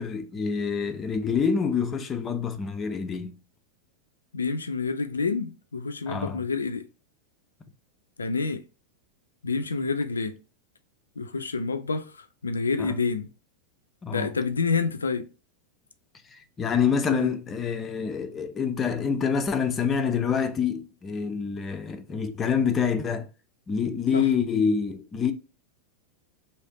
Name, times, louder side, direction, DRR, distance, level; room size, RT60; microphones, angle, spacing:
voice 1, 0.0-3.4 6.1-6.4 12.8-12.9 14.0-14.3 16.3-23.3 23.7-25.3, left 6 dB, 20° left, 0.5 m, -26 dB
voice 2, 4.3-6.8 8.2-8.6 9.4-10.4 11.2-13.3 14.1-15.3 17.1-17.3 24.1-24.3, left 4 dB, 75° left, 0.4 m, -28 dB
3.2 x 2.8 x 3.8 m
figure-of-eight pair, 90°, 0 cm